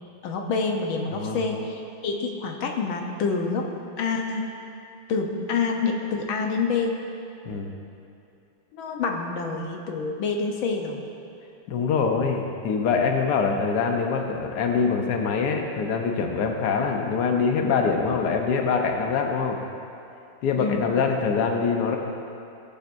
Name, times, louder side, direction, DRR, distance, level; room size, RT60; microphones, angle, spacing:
voice 1, 0.2-3.7 4.0-4.5 5.1-7.0 8.7-11.0 20.6-20.9, left 4 dB, 75° left, 2 dB, 1.7 m, -27 dB
voice 2, 11.7-19.6 20.4-22.0, left 5 dB, 60° left, 2 dB, 1.4 m, -24 dB
18.0 x 8.3 x 2.6 m, 2.7 s
omnidirectional pair, 2.3 m